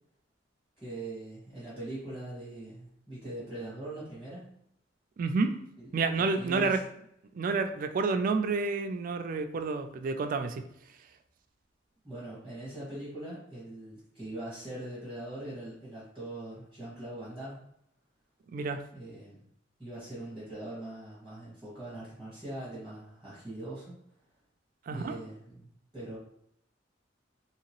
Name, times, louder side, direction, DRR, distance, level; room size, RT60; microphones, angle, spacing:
voice 1, 0.8-4.5 5.8-5.9 6.2-6.8 12.0-17.7 18.9-19.4 19.8-23.9 24.9-26.2, right 1 dB, 5° left, -10 dB, 1.2 m, -41 dB
voice 2, 5.2-5.6 5.9-6.8 7.3-10.6 18.5-18.8 24.9-25.1, right 4 dB, 45° right, 7 dB, 0.3 m, -29 dB
3.0 x 2.8 x 2.9 m, 0.73 s
head